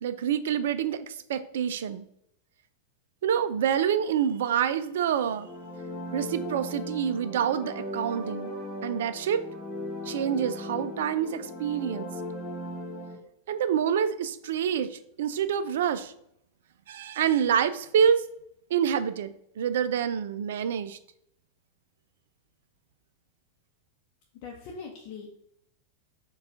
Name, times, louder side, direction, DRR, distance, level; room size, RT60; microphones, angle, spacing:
voice 1, 0.0-2.0 3.2-5.5 6.1-8.5 8.8-9.4 10.1-12.1 13.5-16.1 16.9-18.2 18.7-21.0, right 8 dB, 60° right, 12 dB, 0.3 m, -27 dB
sound 1, 5.2-13.2, left 1 dB, 25° left, 1.1 m, -37 dB
voice 2, 24.4-25.3, left 5 dB, 45° left, -1 dB, 0.7 m, -41 dB
4.7 x 2.3 x 4.7 m, 0.74 s
figure-of-eight pair, 90°, 0 cm